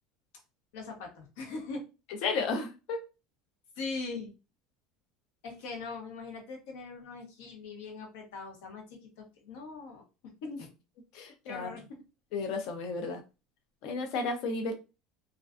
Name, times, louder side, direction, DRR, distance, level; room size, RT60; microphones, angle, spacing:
voice 1, 0.7-1.8 3.8-4.3 5.4-10.0 10.4-10.7 11.4-11.8, left 3 dB, 80° left, 1 dB, 0.9 m, -41 dB
voice 2, 2.2-3.0 10.5-10.6 11.1-11.7 12.3-13.2 13.8-14.7, left 4 dB, 50° left, 5 dB, 0.5 m, -33 dB
2.4 x 2.2 x 2.4 m, 0.29 s
cardioid pair, 165°, 0 cm